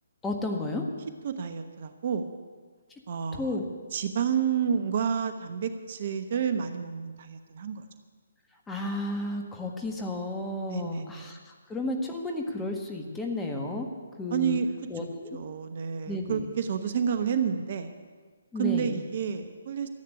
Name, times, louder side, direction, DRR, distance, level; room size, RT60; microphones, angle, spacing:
voice 1, 0.2-0.9 3.3-3.7 8.7-13.9 14.2-14.6 14.9-15.4 16.1-16.4 18.5-19.0, left 2 dB, 10° left, 1 dB, 1.7 m, -32 dB
voice 2, 1.2-2.3 3.1-3.6 3.9-7.8 10.7-11.4 14.3-14.7 15.3-17.9 18.6-19.9, right 7 dB, 45° right, 8 dB, 1.0 m, -30 dB
14.0 x 8.6 x 9.6 m, 1.5 s
figure-of-eight pair, 140°, 0 cm